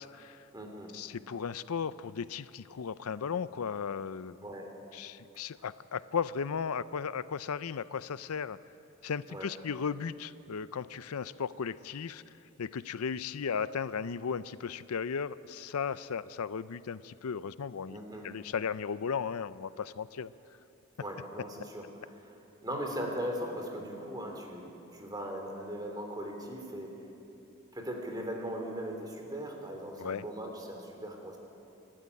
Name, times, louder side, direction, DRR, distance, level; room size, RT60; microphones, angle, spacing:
voice 1, 0.0-0.4 0.9-4.4 4.9-8.6 9.0-12.2 12.6-20.3 30.0-30.2, left 6 dB, 85° left, 16 dB, 0.5 m, -36 dB
voice 2, 0.5-0.9 4.4-4.7 9.3-9.5 17.9-18.2 21.0-22.3 22.6-26.9 27.7-31.4, equal, 20° right, 2 dB, 3.1 m, -39 dB
25.5 x 12.5 x 9.8 m, 2.8 s
head